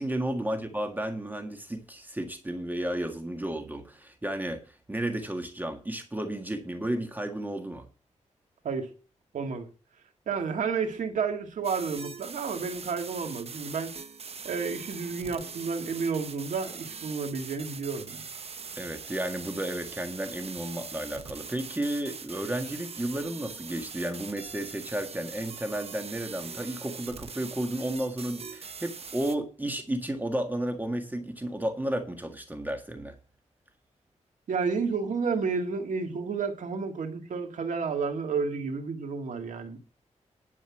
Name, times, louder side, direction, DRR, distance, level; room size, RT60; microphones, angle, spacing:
voice 1, 0.0-7.9 18.8-33.2, right 1 dB, 15° right, 5 dB, 1.7 m, -33 dB
voice 2, 9.3-9.7 10.3-13.9 14.4-18.2 34.5-39.8, right 5 dB, 85° right, 5 dB, 2.0 m, -31 dB
sound 1, 11.6-29.4, right 5 dB, 55° right, 1.0 m, -42 dB
11.0 x 5.5 x 7.3 m, 0.37 s
cardioid pair, 85°, 13 cm